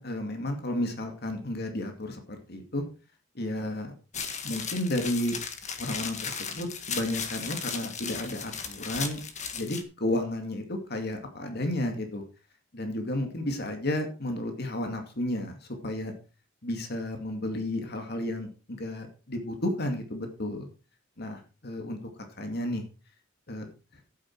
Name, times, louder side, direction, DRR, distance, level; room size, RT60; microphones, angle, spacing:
voice 1, 0.0-2.2 2.5-2.8 3.3-3.9 4.4-5.3 5.8-9.2 9.5-12.2 12.7-15.6 15.8-16.1 16.6-20.7 21.2-22.0 22.4-22.8 23.5-23.7, left 1 dB, 55° left, 5 dB, 2.3 m, -32 dB
sound 1, 4.1-9.8, left 6 dB, 35° left, 1.7 m, -36 dB
12.0 x 9.2 x 4.6 m, 0.33 s
head